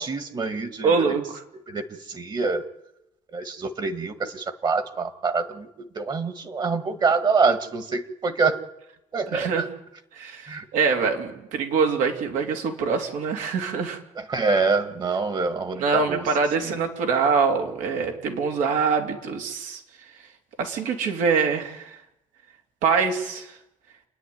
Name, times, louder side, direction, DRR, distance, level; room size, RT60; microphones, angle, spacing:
voice 1, 0.0-1.0 1.7-2.6 3.3-5.7 6.0-8.6 9.1-9.7 10.5-10.6 14.3-16.3 16.6-16.8, right 4 dB, 35° right, 10 dB, 1.8 m, -25 dB
voice 2, 0.8-1.4 9.3-9.6 10.1-14.0 15.8-19.8 20.6-22.0 22.8-23.5, right 5 dB, 80° right, 4 dB, 3.1 m, -24 dB
28.5 x 10.0 x 9.5 m, 0.88 s
cardioid pair, 110°, 13 cm